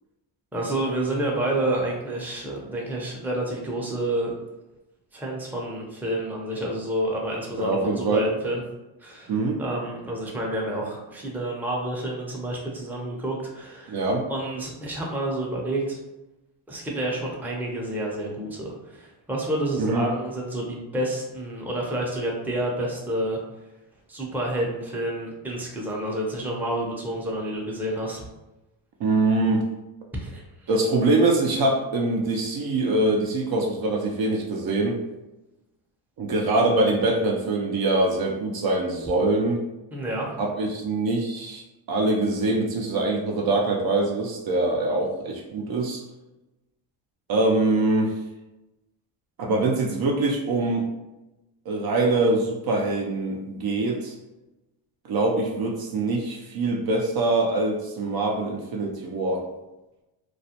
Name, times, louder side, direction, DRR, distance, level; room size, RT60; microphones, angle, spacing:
voice 1, 0.5-4.3 5.1-8.6 9.0-9.3 9.6-14.0 14.3-16.0 16.7-23.4 24.1-28.2 30.2-30.7 39.9-40.3, right 1 dB, 5° right, -2 dB, 0.5 m, -29 dB
voice 2, 7.6-8.2 9.3-9.6 13.9-14.2 19.8-20.1 29.0-29.7 30.7-35.0 36.2-39.6 40.4-41.6 41.9-46.0 47.3-48.1 49.4-50.9 51.7-54.2 55.1-59.4, right 2 dB, 50° right, 0 dB, 0.5 m, -23 dB
2.4 x 2.1 x 2.8 m, 0.99 s
cardioid pair, 80°, 47 cm